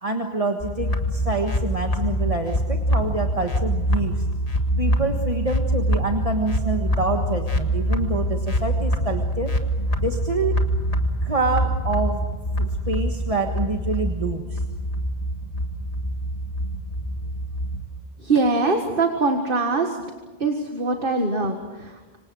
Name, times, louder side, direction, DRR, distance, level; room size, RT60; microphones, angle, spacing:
voice 1, 0.0-4.3 4.8-9.5 10.0-10.6 11.2-12.3 12.6-14.6, right 3 dB, 35° right, 3 dB, 1.6 m, -27 dB
sound 1, 0.6-17.8, equal, 35° left, 1.8 m, -25 dB
voice 2, 18.2-20.0 20.4-22.2, right 3 dB, 60° right, 4 dB, 2.0 m, -23 dB
27.0 x 25.5 x 6.4 m, 1.3 s
omnidirectional pair, 1.0 m